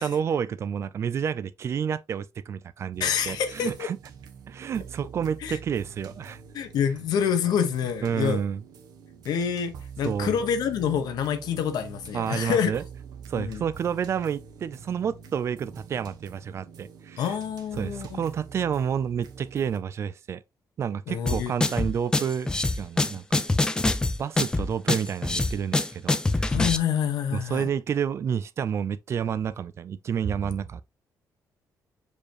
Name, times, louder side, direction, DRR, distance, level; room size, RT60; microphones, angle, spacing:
voice 1, 0.0-4.0 4.5-6.4 8.0-8.6 10.0-10.4 12.1-12.8 13.3-17.4 17.7-20.4 20.8-22.5 22.8-23.4 24.2-26.6 27.3-30.8, right 7 dB, 40° right, 0.4 m, -29 dB
sound 1, 2.9-19.8, right 6 dB, 70° right, 1.3 m, -45 dB
voice 2, 3.0-3.9 5.4-5.6 6.5-8.4 9.2-12.8 13.3-13.6 17.2-18.2 21.1-21.5 26.5-27.7, left 8 dB, 80° left, 1.3 m, -27 dB
sound 2, 21.3-26.8, left 2 dB, 10° left, 0.5 m, -25 dB
6.6 x 5.0 x 3.0 m
cardioid pair, 170°, 7 cm